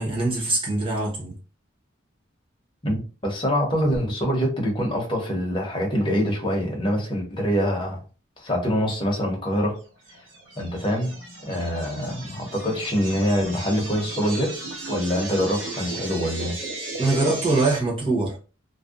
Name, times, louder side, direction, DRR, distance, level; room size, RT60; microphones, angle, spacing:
voice 1, 0.0-1.4 17.0-18.4, right 2 dB, 25° right, 0.8 m, -23 dB
voice 2, 2.8-8.0 8.4-9.8 10.6-14.6 14.9-16.6, equal, 25° left, 0.7 m, -25 dB
sound 1, 10.1-17.8, right 2 dB, 65° right, 1.2 m, -36 dB
2.6 x 2.1 x 2.3 m
head